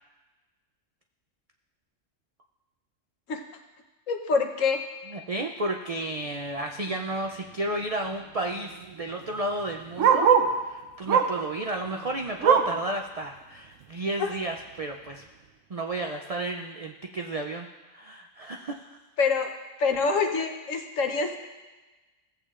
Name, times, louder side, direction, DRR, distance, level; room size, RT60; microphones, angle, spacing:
voice 1, 4.1-4.8 14.2-14.3 19.2-19.5 19.8-21.4, left 4 dB, 80° left, 4 dB, 1.3 m, -25 dB
voice 2, 5.1-10.3 10.6-15.2 15.7-19.0, right 2 dB, 65° right, 3 dB, 0.3 m, -32 dB
Bark, 6.9-7.1 7.5-7.6 7.7-10.6 11.1-11.5 11.9-12.9 13.3-13.4 13.8-13.9 14.6-14.7, right 6 dB, 80° right, 1.1 m, -24 dB
16.0 x 8.2 x 2.5 m, 1.2 s
omnidirectional pair, 1.3 m